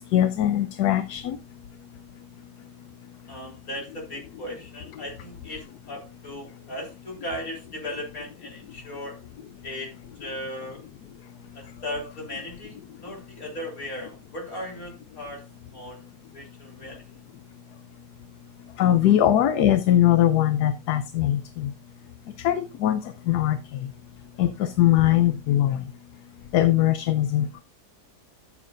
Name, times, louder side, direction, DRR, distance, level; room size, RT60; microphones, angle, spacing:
voice 1, 0.1-1.4 18.8-21.7 22.4-23.0 23.3-23.6 24.4-25.8 26.5-27.6, left 12 dB, 80° left, 11 dB, 1.2 m, -21 dB
voice 2, 3.3-9.2 9.6-9.9 10.2-10.8 11.5-12.8 13.0-15.4 15.7-16.0 16.3-17.0, left 1 dB, 60° left, 0 dB, 4.0 m, -37 dB
13.0 x 7.3 x 2.6 m, 0.27 s
omnidirectional pair, 1.7 m